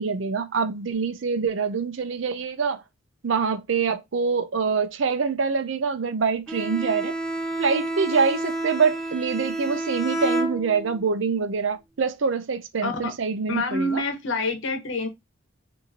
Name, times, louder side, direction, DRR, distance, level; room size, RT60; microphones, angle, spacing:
voice 1, 0.0-2.8 3.2-7.1 7.6-14.0, right 5 dB, 70° right, 0.5 m, -25 dB
Bowed string instrument, 6.5-11.1, right 1 dB, 5° left, 0.6 m, -29 dB
voice 2, 12.8-13.1 13.5-15.1, left 2 dB, 75° left, 1.1 m, -27 dB
3.9 x 2.7 x 2.7 m
head